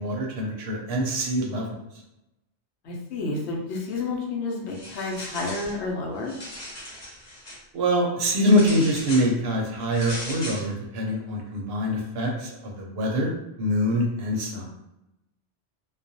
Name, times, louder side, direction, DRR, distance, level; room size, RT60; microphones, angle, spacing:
voice 1, 0.0-1.7 7.7-14.7, equal, 70° right, 0 dB, 0.8 m, -24 dB
voice 2, 2.8-6.3, left 3 dB, 80° left, 0 dB, 0.9 m, -30 dB
sound 1, 4.7-5.8 6.2-7.6 8.4-9.3 9.9-10.7, left 1 dB, 45° left, 0.8 m, -38 dB
2.3 x 2.1 x 2.6 m, 0.89 s
omnidirectional pair, 1.1 m